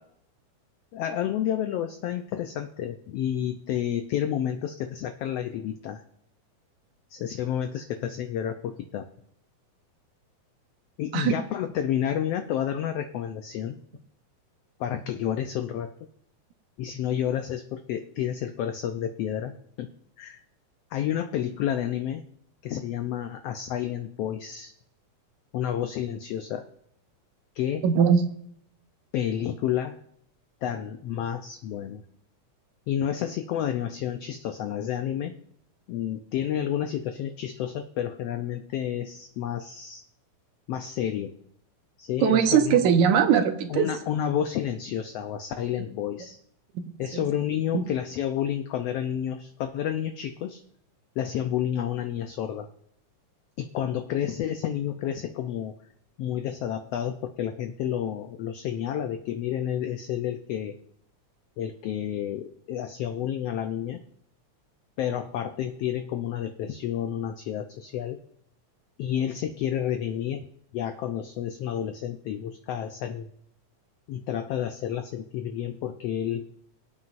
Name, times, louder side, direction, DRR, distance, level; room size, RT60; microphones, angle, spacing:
voice 1, 0.9-6.0 7.1-9.0 11.0-13.8 14.8-15.9 16.8-19.9 20.2-20.4 20.9-22.2 22.6-24.7 25.5-26.6 27.5-27.8 29.1-30.0 30.6-32.0 32.9-35.3 35.9-40.0 40.7-41.3 42.0-42.9 43.7-46.4 47.0-50.6 51.2-52.7 53.6-55.7 56.2-60.8 61.6-64.0 65.0-68.2 69.0-70.4 70.7-73.3 74.1-76.4, left 10 dB, 75° left, 7 dB, 1.5 m, -30 dB
voice 2, 27.8-28.2 42.2-43.9 45.8-45.9 46.7-47.3 47.7-47.8, right 7 dB, 80° right, 7 dB, 2.4 m, -21 dB
24.5 x 8.6 x 2.6 m, 0.70 s
omnidirectional pair, 3.4 m